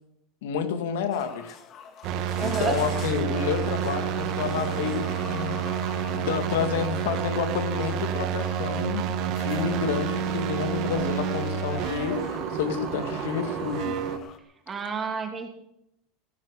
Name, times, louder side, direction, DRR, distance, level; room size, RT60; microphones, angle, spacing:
voice 1, 0.4-1.6 2.4-5.6 6.1-9.0 9.4-12.2 12.5-14.0, left 7 dB, 85° left, 8 dB, 2.2 m, -29 dB
sound 1, 1.1-14.4, left 7 dB, 35° left, 1.9 m, -44 dB
sound 2, 2.0-14.2, right 8 dB, 50° right, 1.6 m, -29 dB
voice 2, 2.4-2.7 14.7-15.5, right 6 dB, 20° right, 3 dB, 2.9 m, -30 dB
17.5 x 9.9 x 6.8 m, 0.79 s
supercardioid pair, 145°, 0 cm